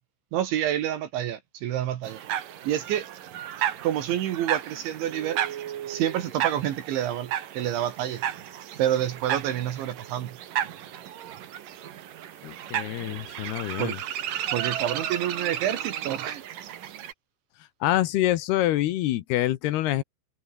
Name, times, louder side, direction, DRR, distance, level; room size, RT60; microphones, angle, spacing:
voice 1, 0.3-2.2 2.6-3.1 3.8-5.4 5.9-8.2 8.8-10.4 13.8-14.0 14.5-16.4, right 11 dB, 75° right, 4.0 m, -28 dB
sound 1, 2.0-17.1, right 11 dB, 55° right, 2.7 m, -33 dB
voice 2, 12.4-14.0 17.8-20.0, left 14 dB, 75° left, 2.6 m, -26 dB
omnidirectional pair, 5.6 m